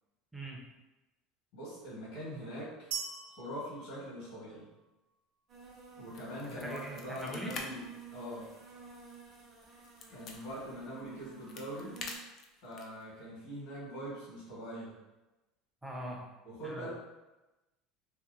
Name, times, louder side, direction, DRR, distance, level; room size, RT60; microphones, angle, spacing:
voice 1, 1.5-2.9 3.4-4.6 6.0-7.8 8.1-8.5 10.1-11.9 12.6-14.9 16.4-16.9, equal, 70° left, -9 dB, 1.4 m, -42 dB
sound 1, 2.9-4.9, right 7 dB, 85° right, 0.4 m, -42 dB
sound 2, 5.5-12.2, right 3 dB, 35° right, 0.9 m, -53 dB
sound 3, 6.1-7.6 8.0-8.1 8.5-10.4 11.2-13.0, left 4 dB, 45° left, 0.5 m, -45 dB
voice 2, 6.5-7.5 15.8-16.2 16.6-16.9, right 1 dB, 5° right, -2 dB, 0.6 m, -41 dB
2.9 x 2.6 x 2.5 m, 1.1 s
supercardioid pair, 115°, 0 cm